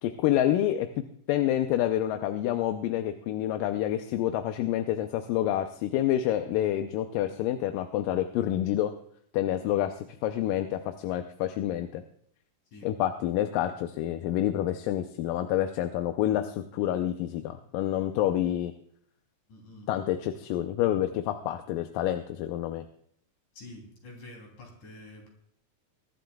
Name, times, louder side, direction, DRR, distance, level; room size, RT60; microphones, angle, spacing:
voice 1, 0.0-0.9 1.3-8.9 9.3-12.0 12.8-18.7 19.9-22.9, left 12 dB, 80° left, 7 dB, 2.3 m, -28 dB
voice 2, 19.5-19.9 23.5-25.3, left 1 dB, 60° left, 1 dB, 4.6 m, -47 dB
23.5 x 11.5 x 2.3 m, 0.65 s
omnidirectional pair, 4.1 m